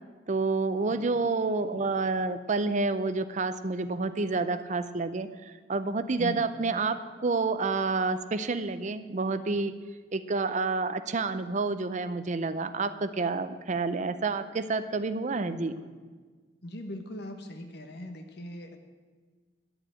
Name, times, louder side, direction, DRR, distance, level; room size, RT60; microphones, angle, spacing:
voice 1, 0.3-9.7 10.1-15.7, right 3 dB, 40° right, 12 dB, 0.5 m, -29 dB
voice 2, 6.2-6.5 15.4-15.9 16.6-18.8, equal, 60° left, 6 dB, 1.4 m, -40 dB
10.5 x 8.0 x 8.9 m, 1.5 s
head